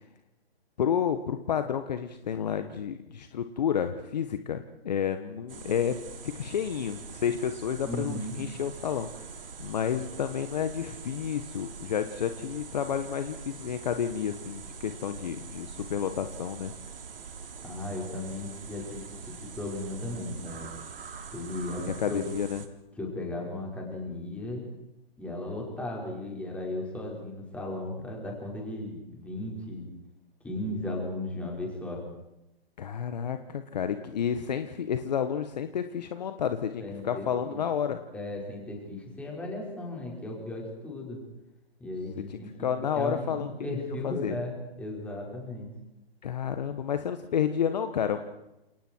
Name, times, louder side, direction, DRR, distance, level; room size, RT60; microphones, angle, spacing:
voice 1, 0.8-6.0 6.2-9.3 9.6-16.7 21.8-22.6 32.8-38.0 42.3-43.5 43.7-44.4 46.2-48.2, left 8 dB, 40° left, 9 dB, 1.6 m, -30 dB
sound 1, 5.5-22.7, right 5 dB, 65° right, 3.5 m, -44 dB
voice 2, 7.8-8.4 17.6-20.7 21.3-22.2 23.0-24.7 25.2-29.9 30.4-32.0 36.8-37.6 38.1-41.2 41.8-45.7, left 1 dB, 5° left, -1 dB, 5.4 m, -36 dB
30.0 x 28.5 x 4.7 m, 0.92 s
hypercardioid pair, 155°, 31 cm